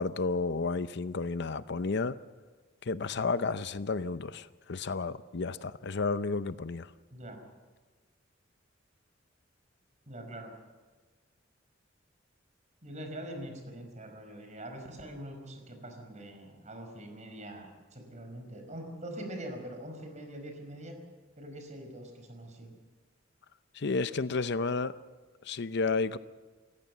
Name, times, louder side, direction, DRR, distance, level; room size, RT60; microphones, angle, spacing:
voice 1, 0.0-2.2 2.8-6.9 23.7-24.9 25.4-26.2, left 4 dB, 65° left, 0.7 m, -31 dB
voice 2, 10.1-10.5 12.8-21.0 21.4-22.7, right 1 dB, 40° right, 5.1 m, -43 dB
28.5 x 15.0 x 7.2 m
head